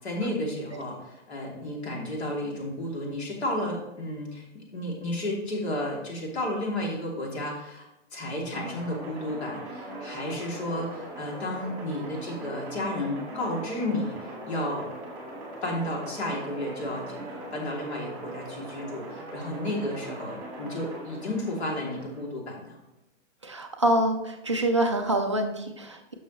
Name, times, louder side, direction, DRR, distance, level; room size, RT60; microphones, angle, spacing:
voice 1, 0.0-14.2 14.4-14.9 15.6-22.8, left 1 dB, 60° left, -1 dB, 2.8 m, -32 dB
sound 1, 8.5-22.2, right 1 dB, 5° right, 1.7 m, -40 dB
voice 2, 23.4-26.1, right 1 dB, 25° right, 3 dB, 0.4 m, -26 dB
11.0 x 6.3 x 3.1 m, 0.90 s
hypercardioid pair, 175°, 37 cm